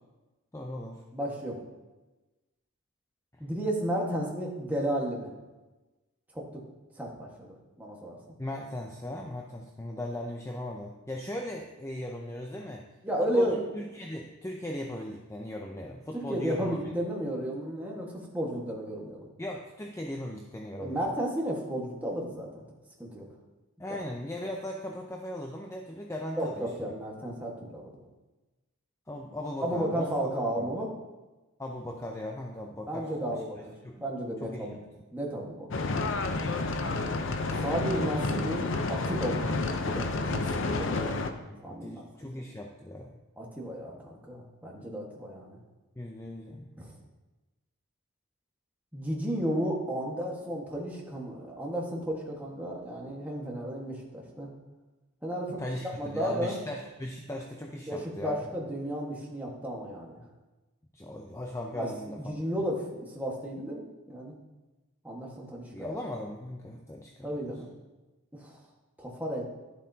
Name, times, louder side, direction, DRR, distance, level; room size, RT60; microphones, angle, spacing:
voice 1, 0.5-1.0 8.4-12.9 13.3-16.8 19.4-21.0 23.8-26.7 29.1-30.1 30.6-30.7 31.6-33.4 33.8-34.0 34.4-34.7 41.5-43.1 46.0-46.7 55.6-55.9 56.1-58.5 60.9-62.3 65.7-67.3, left 1 dB, 15° left, 1 dB, 0.5 m, -38 dB
voice 2, 1.1-1.6 3.4-5.3 6.3-6.6 6.9-8.3 13.0-13.7 16.1-19.3 20.8-22.6 23.0-23.2 26.4-28.0 29.6-30.9 32.9-34.8 35.1-35.9 37.6-41.3 41.6-42.1 43.4-45.6 46.8-46.9 48.9-54.5 55.2-56.6 57.8-60.2 61.7-64.3 65.0-66.0 67.2-67.7 68.3-68.6 69.0-69.4, equal, 10° right, -2 dB, 1.5 m, -33 dB
sound 1, 35.7-41.3, left 3 dB, 55° left, 0.6 m, -30 dB
11.5 x 7.2 x 2.8 m, 1.1 s
head